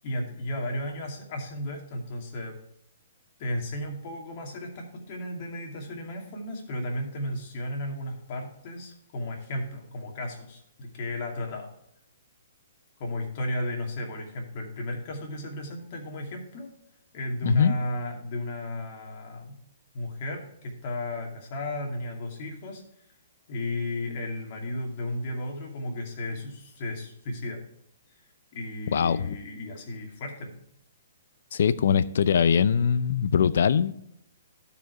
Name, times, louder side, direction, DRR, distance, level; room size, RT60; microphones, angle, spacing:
voice 1, 0.0-2.6 3.4-11.7 13.0-16.7 17.1-19.5 19.9-22.8 23.5-27.6 28.5-30.5, left 1 dB, 40° left, 2.5 m, -34 dB
voice 2, 17.4-17.8 28.9-29.4 31.5-33.9, left 7 dB, 65° left, 0.5 m, -22 dB
12.0 x 5.1 x 4.7 m
hypercardioid pair, 160°, 0 cm